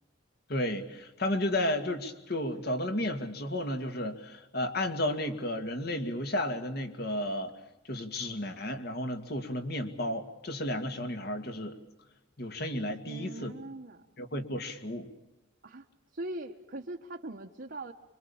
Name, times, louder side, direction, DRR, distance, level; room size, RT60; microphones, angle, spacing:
voice 1, 0.5-7.5 7.8-11.8 12.4-13.5 14.2-15.1, left 1 dB, 55° left, 7 dB, 2.3 m, -33 dB
voice 2, 13.0-14.1 15.6-15.9 16.1-17.9, right 2 dB, 55° right, 1 dB, 1.2 m, -41 dB
26.0 x 24.5 x 7.2 m, 0.99 s
head